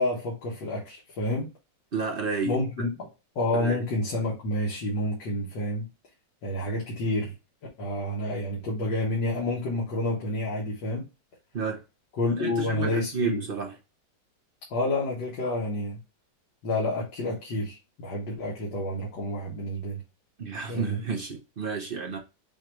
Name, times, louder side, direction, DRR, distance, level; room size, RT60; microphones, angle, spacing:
voice 1, 0.0-1.5 2.4-3.1 3.4-5.9 6.4-7.3 7.8-11.0 12.2-13.4 14.7-16.0 16.6-20.0 20.7-21.0, left 1 dB, 90° left, 2.2 m, -29 dB
voice 2, 1.9-2.6 3.5-3.8 11.5-11.8 12.4-13.7 20.4-22.2, right 5 dB, 50° right, 0.7 m, -31 dB
6.8 x 2.5 x 3.1 m
omnidirectional pair, 1.9 m